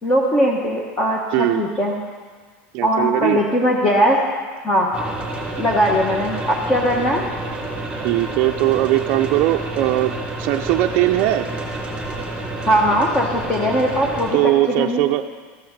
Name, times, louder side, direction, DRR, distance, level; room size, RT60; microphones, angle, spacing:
voice 1, 0.0-1.9 2.8-4.2 4.6-4.9 5.6-7.2 12.6-15.0, equal, 20° left, -2 dB, 1.1 m, -19 dB
voice 2, 2.7-3.4 8.0-10.1 10.4-11.5 14.3-15.2, right 15 dB, 50° right, 4 dB, 0.5 m, -19 dB
sound 1, 4.9-14.3, right 2 dB, 15° right, 2.4 m, -29 dB
13.0 x 6.1 x 7.2 m, 1.5 s
supercardioid pair, 150°, 6 cm